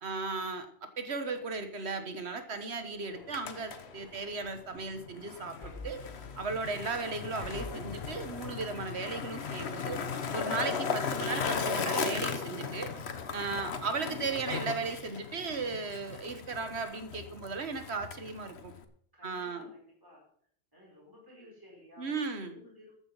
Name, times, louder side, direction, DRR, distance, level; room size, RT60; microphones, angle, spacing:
voice 1, 0.0-6.1 6.4-10.0 10.3-12.9 13.3-18.7 19.2-19.7 22.0-22.6, right 4 dB, 75° right, 9 dB, 1.7 m, -36 dB
sound 1, 0.9-13.2 13.6-13.8, left 2 dB, 45° left, 2.5 m, -53 dB
Skateboard, 3.1-18.8, left 5 dB, 75° left, 1.3 m, -37 dB
voice 2, 19.1-20.2 20.7-22.9, left 1 dB, 20° right, -3 dB, 5.0 m, -56 dB
13.5 x 9.1 x 5.6 m, 0.63 s
omnidirectional pair, 1.1 m